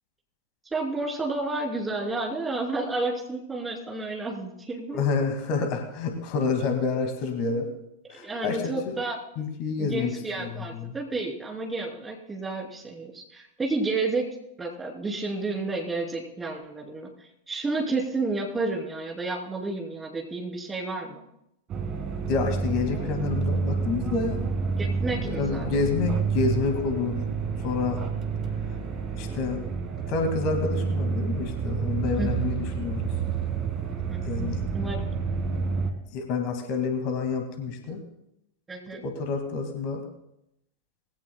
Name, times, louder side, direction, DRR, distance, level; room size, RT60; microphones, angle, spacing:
voice 1, 0.6-5.0 7.6-7.7 8.1-9.2 9.8-14.3 14.6-17.1 17.5-21.2 24.8-25.8 32.2-32.3 34.1-34.5 34.7-35.0 38.7-39.0, right 3 dB, 15° right, 1 dB, 3.1 m, -31 dB
voice 2, 4.9-7.7 8.1-8.9 9.4-10.9 22.3-24.4 25.2-27.2 27.6-28.0 29.1-29.6 30.1-33.1 34.2-34.6 36.1-38.0 39.0-40.0, left 4 dB, 45° left, 6 dB, 2.0 m, -28 dB
sound 1, 21.7-35.9, right 5 dB, 30° right, 1.7 m, -29 dB
20.5 x 16.0 x 2.2 m, 0.81 s
figure-of-eight pair, 90°, 0 cm